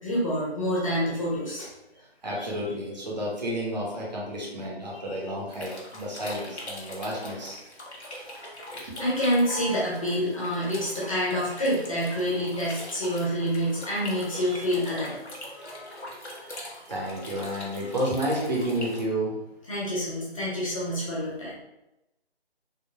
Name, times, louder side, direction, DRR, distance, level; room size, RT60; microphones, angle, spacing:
voice 1, 0.0-1.7 5.1-5.2 9.0-15.2 17.5-17.6 19.7-21.6, equal, 30° left, -7 dB, 0.8 m, -27 dB
voice 2, 2.0-7.6 8.7-8.8 9.5-9.8 14.0-14.2 14.8-19.3, right 1 dB, 40° right, -4 dB, 0.8 m, -32 dB
sound 1, 5.5-19.0, left 1 dB, 85° left, 1.0 m, -42 dB
3.7 x 2.1 x 2.2 m, 0.91 s
figure-of-eight pair, 155°, 32 cm